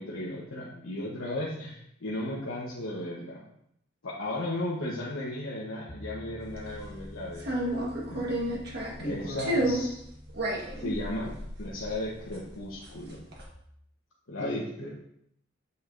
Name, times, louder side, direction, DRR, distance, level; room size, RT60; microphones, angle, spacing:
voice 1, 0.0-3.4 4.0-7.4 8.1-8.6 9.0-10.0 10.8-11.3 11.6-13.2 14.3-14.6, left 1 dB, 85° left, -5 dB, 1.1 m, -35 dB
Piano, 5.9-13.6, equal, 25° left, 0.6 m, -49 dB
sound 1, 6.5-6.9 7.4-9.1 9.4-9.9 10.3-12.6 12.8-13.4, right 1 dB, 50° right, 1.4 m, -31 dB
voice 2, 9.0-9.7 14.4-15.0, equal, 65° left, -5 dB, 2.4 m, -36 dB
8.1 x 5.7 x 2.6 m, 0.72 s
head